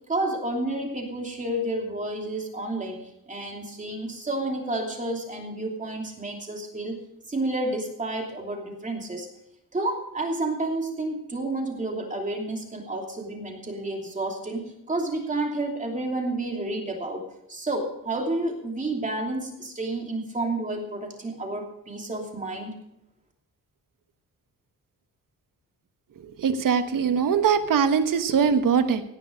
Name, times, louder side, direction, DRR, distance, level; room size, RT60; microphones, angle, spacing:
voice 1, 0.1-7.0 7.3-9.3 9.7-17.2 17.5-22.7, right 2 dB, 20° right, 1 dB, 2.9 m, -30 dB
voice 2, 26.4-29.0, right 6 dB, 65° right, 9 dB, 1.3 m, -22 dB
17.0 x 10.5 x 5.2 m, 0.80 s
wide cardioid pair, 180°, 35 cm